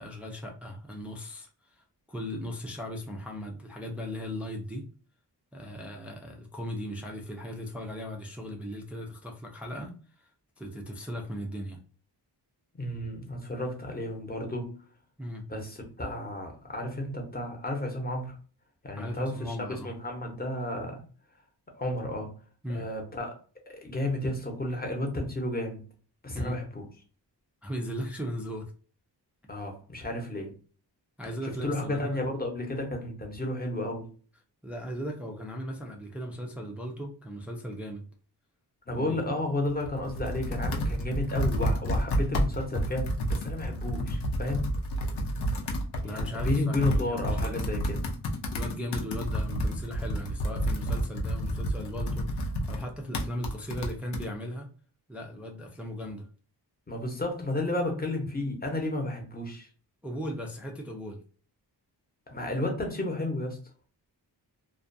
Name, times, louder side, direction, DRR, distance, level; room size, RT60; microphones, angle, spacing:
voice 1, 0.0-4.8 5.5-10.3 10.6-11.8 15.2-15.4 19.0-19.9 22.6-22.9 26.3-26.6 27.6-28.7 31.2-32.2 34.6-38.1 38.9-39.2 45.4-45.7 46.0-47.6 48.4-54.7 55.1-56.3 60.0-61.2, equal, 5° right, 1 dB, 0.4 m, -38 dB
voice 2, 12.7-14.8 15.5-18.4 18.8-21.0 21.7-22.3 22.7-23.3 23.7-25.8 26.2-26.8 29.5-30.5 31.4-34.1 38.9-44.7 46.0-48.1 56.9-59.7 62.3-63.6, left 1 dB, 20° left, 2 dB, 0.8 m, -32 dB
Computer keyboard, 39.7-54.3, equal, 70° left, 0.6 m, -30 dB
2.4 x 2.2 x 2.5 m, 0.40 s
wide cardioid pair, 100°, 42 cm